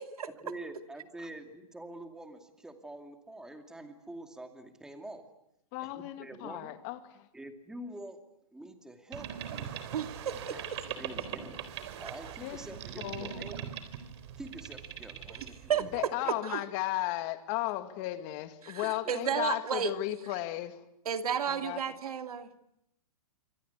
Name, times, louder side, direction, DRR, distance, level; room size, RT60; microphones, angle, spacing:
voice 1, 0.4-5.2 5.8-6.8 7.3-8.2 8.5-9.7 10.3-10.7 11.0-11.6 12.0-13.7 14.4-16.4 18.8-18.9, right 1 dB, 5° right, 2.4 m, -46 dB
voice 2, 5.7-7.3 12.4-12.6 13.0-13.4 15.8-20.8 21.5-21.8, left 16 dB, 30° left, 2.0 m, -35 dB
Boat Water vehicle, 9.1-16.0, right 9 dB, 45° right, 3.8 m, -41 dB
voice 3, 9.9-10.4 15.7-15.8 16.2-16.6 18.6-19.9 21.1-22.5, right 8 dB, 75° right, 2.5 m, -32 dB
27.5 x 25.0 x 8.2 m
hypercardioid pair, 155°, 19 cm